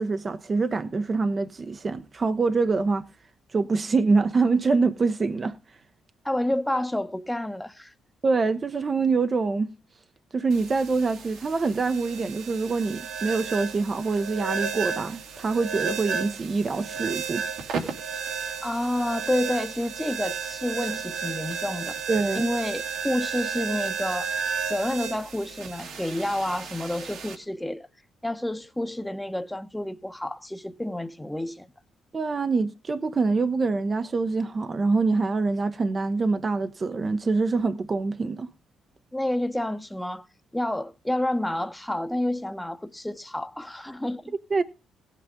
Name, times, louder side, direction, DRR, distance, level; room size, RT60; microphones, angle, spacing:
voice 1, 0.0-3.0 3.5-5.5 8.2-9.7 10.3-17.4 22.1-22.5 32.1-38.5 44.5-44.6, right 4 dB, 35° right, 0.8 m, -25 dB
voice 2, 6.2-7.9 18.6-22.0 22.3-24.3 24.7-27.9 28.2-31.7 39.1-40.3 40.5-44.3, left 1 dB, 5° left, 1.0 m, -29 dB
sound 1, 10.5-27.3, right 6 dB, 75° right, 2.4 m, -33 dB
17.0 x 8.4 x 3.7 m
cardioid pair, 100°, 0 cm